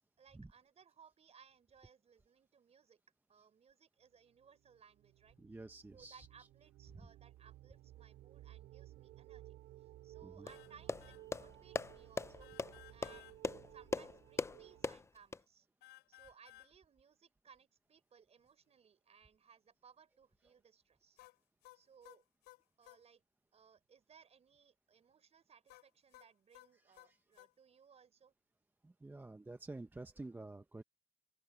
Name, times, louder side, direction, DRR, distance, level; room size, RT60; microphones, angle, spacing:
voice 1, 0.2-3.0 3.3-5.4 5.9-12.5 12.9-13.3 13.7-15.7 16.1-21.2 21.7-22.2 22.8-23.2 23.5-28.3, right 7 dB, 40° right, 4.6 m, -64 dB
sound 1, 4.3-14.9, right 15 dB, 80° right, 3.1 m, -57 dB
voice 2, 5.4-6.3 10.2-10.5 26.8-27.2 28.8-30.8, right 2 dB, 10° right, 0.9 m, -50 dB
sound 2, 10.5-10.7 11.0-11.2 12.4-13.4 15.8-16.7 21.2-23.0 25.7-27.5, left 19 dB, 90° left, 6.4 m, -59 dB
sound 3, 10.5-15.4, left 4 dB, 15° left, 0.5 m, -41 dB
open air
cardioid pair, 110°, 17 cm